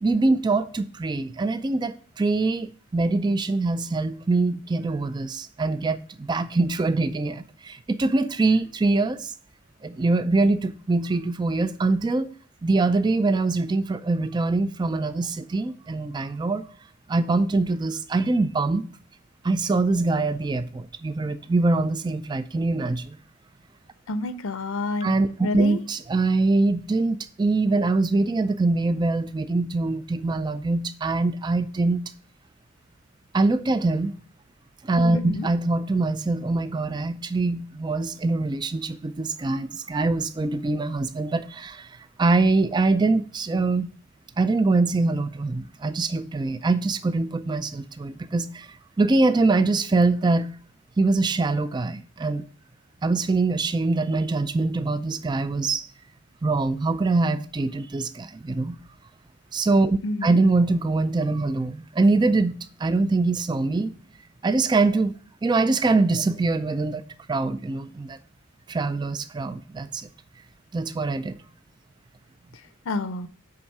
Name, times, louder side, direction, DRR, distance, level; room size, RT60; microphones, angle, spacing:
voice 1, 0.0-9.3 9.8-12.3 12.6-16.6 17.1-18.8 19.4-23.2 25.0-32.0 33.3-34.1 34.8-43.9 44.4-48.7 49.0-50.5 51.0-52.4 53.0-55.9 56.4-58.8 59.5-63.9 64.4-65.2 65.4-67.0 67.3-68.2 68.7-70.1 70.7-71.4, right 3 dB, 20° right, 0.3 m, -23 dB
voice 2, 24.1-25.1 25.4-25.8 35.1-35.5 60.0-60.4 72.9-73.3, left 2 dB, 75° left, 0.6 m, -29 dB
7.8 x 3.5 x 5.4 m
head